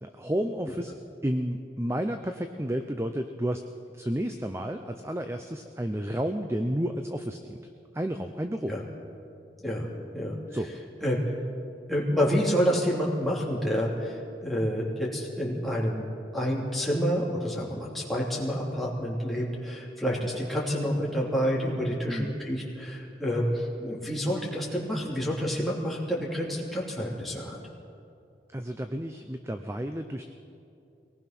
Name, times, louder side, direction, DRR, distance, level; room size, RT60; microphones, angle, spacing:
voice 1, 0.0-0.9 1.2-3.6 3.9-8.7 10.5-10.7 22.1-22.4 28.5-30.3, equal, 15° right, 6 dB, 0.6 m, -31 dB
voice 2, 9.6-10.4 11.0-11.2 11.9-16.0 16.3-27.6, equal, ahead, -5 dB, 3.1 m, -28 dB
23.0 x 19.0 x 6.0 m, 2.5 s
head